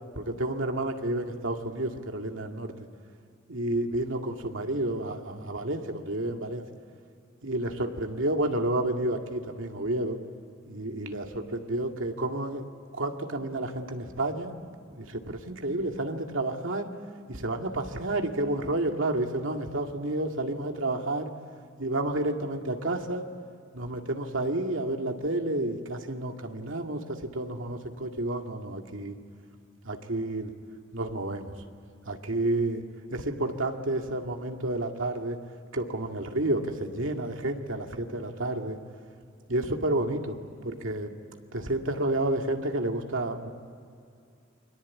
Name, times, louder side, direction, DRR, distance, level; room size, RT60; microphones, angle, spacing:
voice 1, 0.1-2.7 3.5-6.6 7.4-10.2 10.7-12.6 12.9-14.6 15.0-16.9 17.3-21.3 21.8-23.2 23.7-29.2 29.8-30.5 30.9-31.5 32.1-32.8 33.1-35.4 35.7-38.8 39.5-41.1 41.5-43.5, right 1 dB, 80° right, 4 dB, 2.2 m, -30 dB
29.5 x 22.5 x 8.5 m, 2.4 s
head